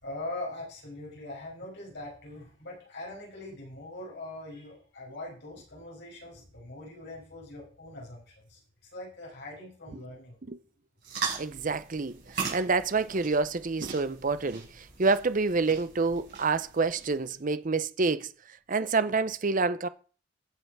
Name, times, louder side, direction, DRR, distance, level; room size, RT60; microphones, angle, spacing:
voice 1, 0.0-10.4, left 2 dB, 55° left, 6.2 m, -42 dB
sound 1, 11.0-17.3, right 5 dB, 55° right, 5.4 m, -39 dB
voice 2, 11.4-18.3 18.7-19.9, right 4 dB, 40° right, 0.7 m, -28 dB
14.5 x 6.8 x 4.8 m
head